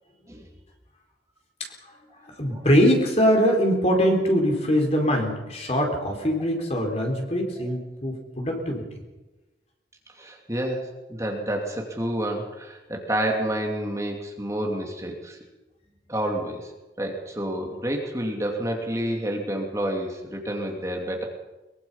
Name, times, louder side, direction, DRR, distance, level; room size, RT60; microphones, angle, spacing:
voice 1, 2.2-8.8, equal, 35° left, 2 dB, 4.5 m, -22 dB
voice 2, 10.2-15.4 16.1-16.7 17.0-21.2, right 1 dB, 15° right, 1 dB, 2.7 m, -29 dB
23.0 x 23.0 x 5.7 m, 1.1 s
head